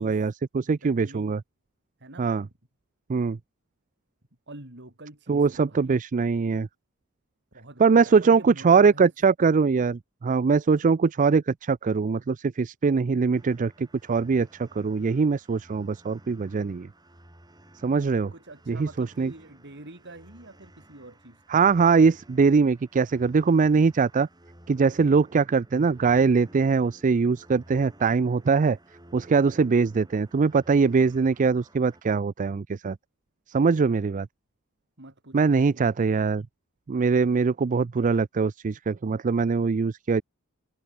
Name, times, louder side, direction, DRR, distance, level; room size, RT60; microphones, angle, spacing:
voice 1, 0.0-1.4 2.2-2.4 3.1-3.4 5.3-6.7 7.8-16.9 17.8-18.3 18.7-19.3 21.5-24.3 24.7-28.8 29.1-33.0 33.5-34.3 35.3-36.4 36.9-40.2, right 5 dB, 35° right, 0.4 m, -22 dB
voice 2, 0.6-1.4 2.0-2.3 4.5-6.0 7.5-9.1 18.3-21.6 35.0-36.3, right 2 dB, 55° right, 4.6 m, -46 dB
sound 1, 13.3-32.0, right 1 dB, 20° right, 5.2 m, -54 dB
head